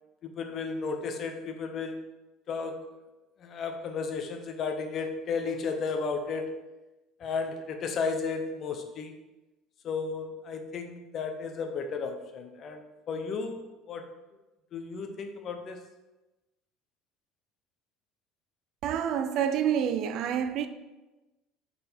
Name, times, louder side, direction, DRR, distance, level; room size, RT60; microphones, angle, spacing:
voice 1, 0.2-2.0 2.5-3.0 3.4-6.6 7.2-9.1 9.8-14.1 14.7-15.8, left 4 dB, 35° left, 0.6 m, -34 dB
voice 2, 18.8-20.7, right 8 dB, 50° right, 0.3 m, -28 dB
5.3 x 4.0 x 4.3 m
cardioid pair, 160°, 0 cm